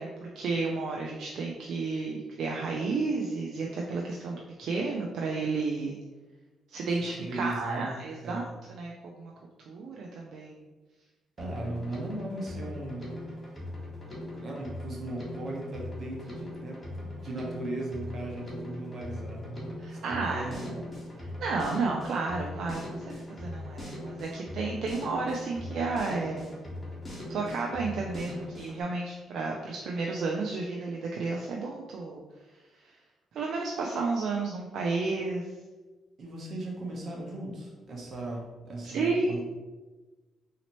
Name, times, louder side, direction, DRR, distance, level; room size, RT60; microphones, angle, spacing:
voice 1, 0.0-6.0 6.7-9.3 9.7-10.6 19.8-20.5 21.4-26.6 27.3-32.2 32.8-32.9 33.3-35.5 38.8-39.3, right 3 dB, 70° right, -1 dB, 0.4 m, -32 dB
voice 2, 7.2-8.5 11.4-13.2 13.5-13.6 14.3-20.9 36.2-39.4, right 2 dB, 50° right, -2 dB, 1.0 m, -38 dB
Drum kit, 11.4-28.8, left 1 dB, 25° left, 1.4 m, -40 dB
4.0 x 2.8 x 3.0 m, 1.2 s
cardioid pair, 90°, 0 cm